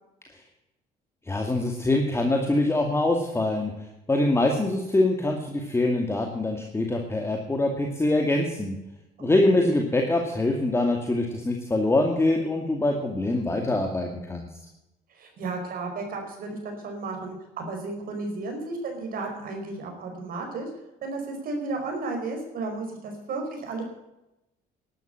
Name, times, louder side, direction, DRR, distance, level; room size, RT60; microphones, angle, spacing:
voice 1, 1.3-3.7 4.1-8.7 9.2-14.5, left 2 dB, 15° left, 2 dB, 2.3 m, -24 dB
voice 2, 15.1-20.7 21.0-23.8, right 3 dB, 60° right, 2 dB, 5.0 m, -33 dB
12.0 x 12.0 x 7.9 m, 0.92 s
cardioid pair, 110°, 17 cm